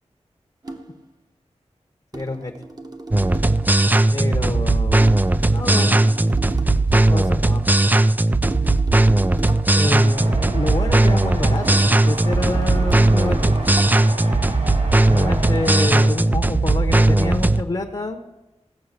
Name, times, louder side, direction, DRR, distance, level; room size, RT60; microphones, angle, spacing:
sound 1, 0.6-1.1 2.1-3.8 5.0-6.9 8.4-9.9 11.6-14.2, right 2 dB, 35° right, 1.0 m, -36 dB
voice 1, 2.1-2.5 4.1-5.2 5.5-6.0 6.9-7.6 9.7-13.6 15.1-18.2, left 2 dB, 35° left, 3 dB, 1.0 m, -27 dB
sound 2, 3.1-17.6, right 2 dB, 15° right, 0.4 m, -17 dB
sound 3, 9.8-16.1, right 1 dB, 65° right, 3.4 m, -33 dB
16.0 x 6.6 x 6.7 m, 1.0 s
wide cardioid pair, 75°, 12 cm